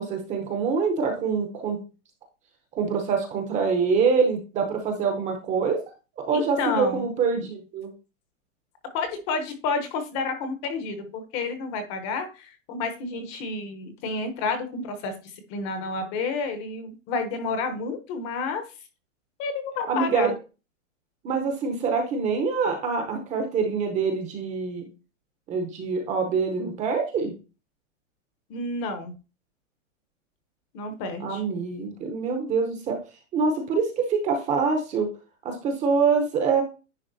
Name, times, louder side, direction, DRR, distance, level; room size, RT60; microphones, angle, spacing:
voice 1, 0.0-1.8 2.8-5.8 6.2-7.9 19.9-20.3 21.2-24.9 25.5-27.3 31.2-33.0 33.3-35.1 35.4-36.6, right 5 dB, 20° right, 5 dB, 0.8 m, -25 dB
voice 2, 6.3-7.1 8.9-18.6 19.4-20.3 28.5-29.1 30.7-31.4, left 4 dB, 30° left, 7 dB, 0.9 m, -30 dB
10.0 x 3.6 x 2.7 m, 0.31 s
supercardioid pair, 155°, 38 cm